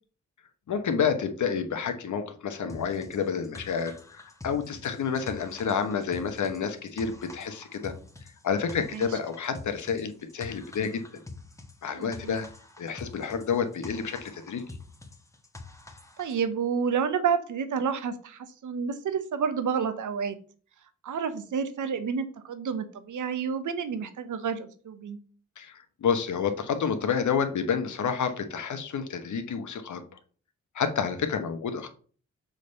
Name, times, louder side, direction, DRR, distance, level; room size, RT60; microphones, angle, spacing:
voice 1, 0.7-7.9 8.4-11.0 11.8-12.5 12.8-14.6 25.6-30.0 30.7-31.9, left 6 dB, 70° left, 8 dB, 1.1 m, -29 dB
sound 1, 2.7-16.4, left 3 dB, 10° left, 1.3 m, -46 dB
voice 2, 12.0-12.3 16.2-20.4 21.0-25.2, right 6 dB, 70° right, 10 dB, 0.9 m, -30 dB
6.4 x 3.3 x 5.4 m, 0.43 s
supercardioid pair, 50°, 31 cm